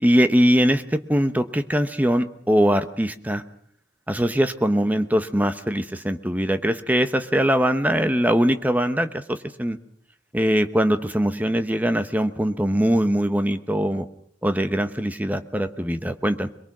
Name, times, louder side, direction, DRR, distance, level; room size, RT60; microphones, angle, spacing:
voice 1, 0.0-3.4 4.1-9.8 10.3-14.1 14.4-16.5, equal, 10° right, 9 dB, 1.0 m, -22 dB
22.5 x 22.0 x 6.1 m, 0.66 s
head